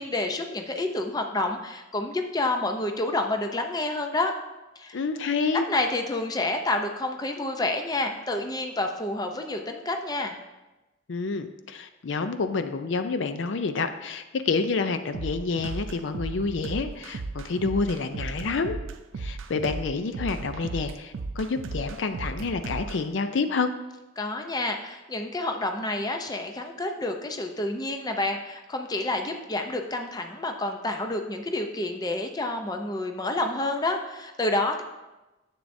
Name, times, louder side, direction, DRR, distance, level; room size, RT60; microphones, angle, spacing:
voice 1, 0.0-4.3 4.8-5.0 5.7-10.4 24.2-34.8, left 2 dB, 20° left, 4 dB, 0.5 m, -29 dB
voice 2, 4.9-5.7 11.1-18.8 19.2-23.7, left 4 dB, 70° left, 9 dB, 0.5 m, -28 dB
sound 1, 15.1-23.0, right 3 dB, 90° right, 0.5 m, -35 dB
10.0 x 7.6 x 2.6 m, 1.1 s
head